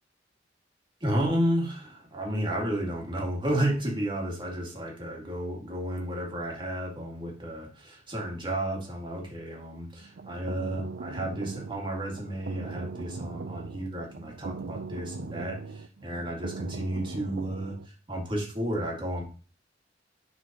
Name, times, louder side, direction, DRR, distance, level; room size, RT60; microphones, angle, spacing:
voice 1, 1.0-17.8 18.1-19.2, right 1 dB, 25° right, -1 dB, 2.2 m, -32 dB
sound 1, 10.0-17.9, right 4 dB, 65° right, 0.5 m, -39 dB
10.5 x 4.4 x 2.9 m, 0.36 s
head